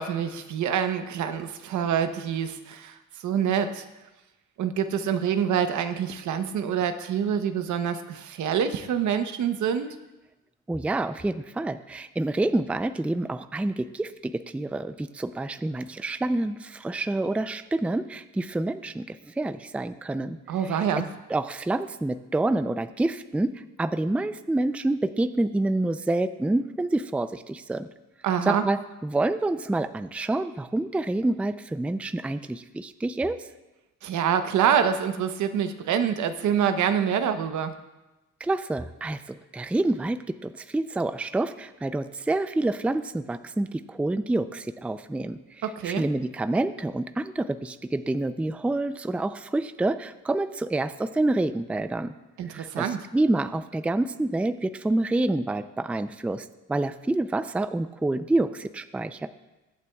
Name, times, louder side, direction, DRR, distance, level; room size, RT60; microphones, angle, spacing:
voice 1, 0.0-3.8 4.6-9.9 20.5-21.1 28.2-28.6 34.0-37.8 45.6-46.0 52.4-53.0, right 8 dB, 75° right, 9 dB, 0.9 m, -26 dB
voice 2, 10.7-20.4 20.6-20.8 21.3-27.9 28.5-33.4 38.4-52.1 52.5-59.3, right 2 dB, 5° right, 11 dB, 0.4 m, -28 dB
21.5 x 8.1 x 2.3 m, 1.1 s
cardioid pair, 90°, 30 cm